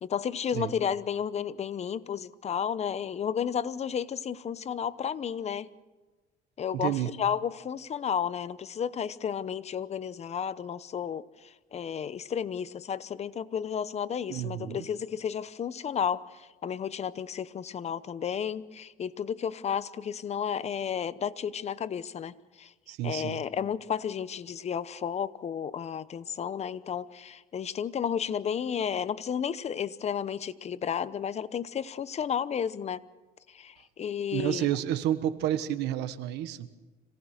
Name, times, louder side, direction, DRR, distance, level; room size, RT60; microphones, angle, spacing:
voice 1, 0.0-5.7 6.6-22.7 23.0-33.0 33.5-34.7, left 8 dB, 40° left, 16 dB, 0.8 m, -32 dB
voice 2, 6.7-7.1 14.3-14.8 22.9-23.4 34.3-36.7, right 12 dB, 90° right, 12 dB, 1.3 m, -30 dB
26.0 x 18.0 x 6.5 m, 1.2 s
cardioid pair, 110°, 17 cm